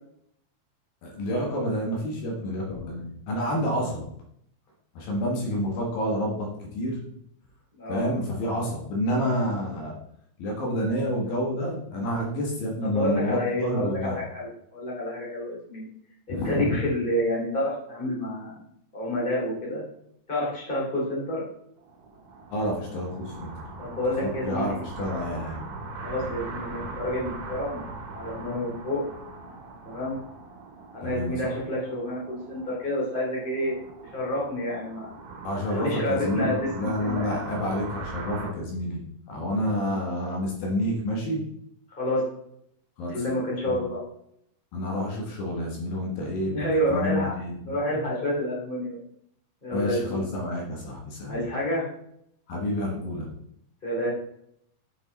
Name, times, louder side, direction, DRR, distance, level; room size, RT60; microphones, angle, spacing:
voice 1, 1.0-4.0 4.9-7.0 7.9-10.0 10.4-14.2 16.3-16.8 22.5-23.5 24.2-25.6 31.0-31.5 35.4-39.0 39.3-41.4 43.0-43.2 43.7-43.8 44.7-46.6 46.9-48.0 49.7-51.4 52.5-53.3, equal, 70° left, -2 dB, 3.3 m, -29 dB
voice 2, 7.7-8.1 12.8-15.8 16.3-18.5 18.9-19.8 20.3-21.4 23.8-25.1 26.0-27.8 28.1-29.0 29.8-30.2 30.9-33.8 34.0-35.1 35.7-37.4 42.0-42.2 43.1-44.0 46.5-47.3 47.7-49.0 49.6-50.2 51.3-51.9 53.8-54.1, left 1 dB, 15° left, -6 dB, 3.0 m, -29 dB
sound 1, 21.8-38.5, right 3 dB, 80° right, 3.1 m, -41 dB
8.5 x 5.5 x 4.1 m, 0.71 s
omnidirectional pair, 4.4 m